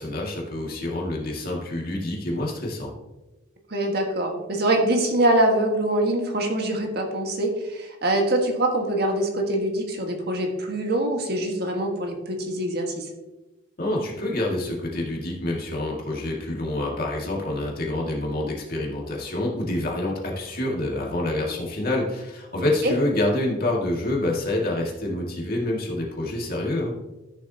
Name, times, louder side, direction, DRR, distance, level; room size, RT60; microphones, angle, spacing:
voice 1, 0.0-2.9 13.8-26.9, left 1 dB, 50° left, -2 dB, 2.1 m, -27 dB
voice 2, 3.7-13.0 22.8-22.9, right 1 dB, 55° right, 2 dB, 1.6 m, -24 dB
13.5 x 7.1 x 2.8 m, 1.1 s
head